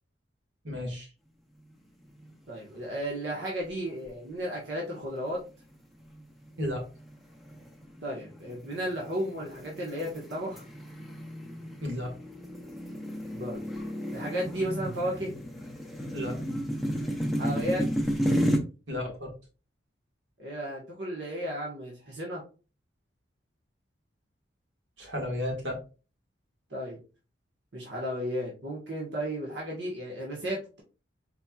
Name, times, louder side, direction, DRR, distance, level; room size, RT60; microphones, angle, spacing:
voice 1, 0.6-1.1 6.6-6.8 11.8-12.1 16.1-16.4 18.9-19.3 25.0-25.8, left 1 dB, 90° right, 0 dB, 1.8 m, -33 dB
sound 1, 2.1-2.7 3.0-3.1 3.8-4.3 4.9-5.1 5.7-18.6, equal, ahead, 0.6 m, -33 dB
voice 2, 2.5-5.4 8.0-10.6 13.3-13.6 14.1-15.3 17.4-17.8 20.4-22.4 26.7-27.0 27.7-30.8, equal, 65° right, -4 dB, 1.3 m, -34 dB
4.4 x 4.3 x 2.3 m, 0.34 s
head